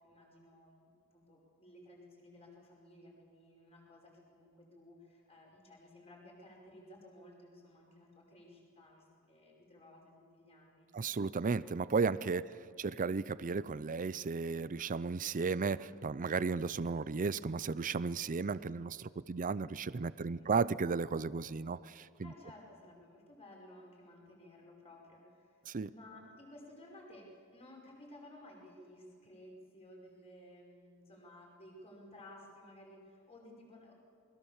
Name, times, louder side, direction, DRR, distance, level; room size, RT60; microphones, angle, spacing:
voice 1, 0.0-10.9 12.4-12.8 20.2-20.6 22.2-25.6 25.9-33.9, left 1 dB, 30° left, -1 dB, 5.4 m, -56 dB
voice 2, 10.9-22.3 25.7-25.9, right 4 dB, 35° right, 17 dB, 0.5 m, -34 dB
27.5 x 21.5 x 7.3 m, 2.4 s
head